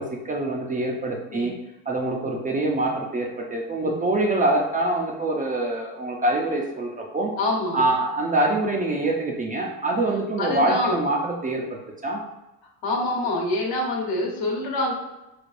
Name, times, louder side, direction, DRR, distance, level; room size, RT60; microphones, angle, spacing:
voice 1, 0.0-1.5 1.9-7.3 7.7-12.2, right 2 dB, 20° right, 0 dB, 0.5 m, -25 dB
voice 2, 7.4-7.8 10.4-11.0 12.8-14.9, left 2 dB, 60° left, -1 dB, 1.3 m, -25 dB
4.1 x 3.3 x 2.5 m, 0.97 s
supercardioid pair, 100°, 42 cm